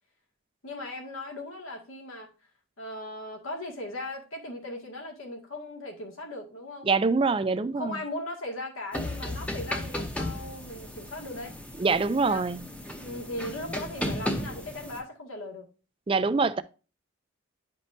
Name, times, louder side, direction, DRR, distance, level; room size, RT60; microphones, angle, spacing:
voice 1, 0.6-2.3 2.8-7.2 7.5-11.6 12.3-12.5 13.0-15.7, left 1 dB, 80° left, 2.0 m, -38 dB
voice 2, 6.8-7.9 11.8-12.6 16.1-16.6, right 4 dB, 25° right, 0.3 m, -24 dB
sound 1, 8.9-15.0, left 1 dB, 5° left, 0.7 m, -35 dB
10.0 x 5.2 x 2.6 m
head